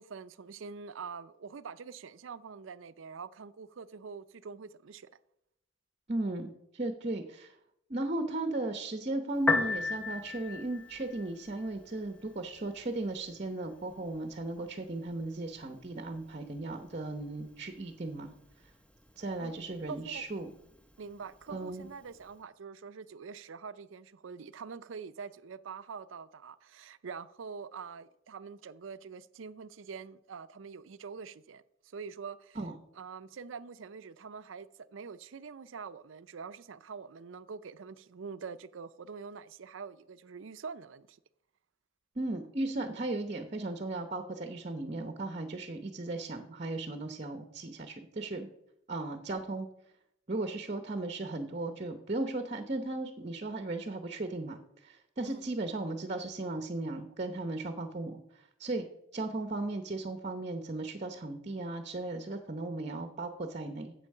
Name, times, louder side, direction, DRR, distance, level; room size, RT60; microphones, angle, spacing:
voice 1, 0.0-5.1 19.4-19.6 19.9-20.3 21.0-32.6 33.0-41.2 55.2-55.4, right 5 dB, 85° right, 0.5 m, -45 dB
voice 2, 6.1-7.5 7.9-18.3 19.2-20.5 21.5-21.9 32.6-32.7 42.2-48.5 48.9-49.7 50.3-58.8 59.1-63.9, right 2 dB, 35° right, 0.8 m, -36 dB
Piano, 9.3-22.4, left 3 dB, 5° left, 0.8 m, -40 dB
8.2 x 7.8 x 6.5 m
head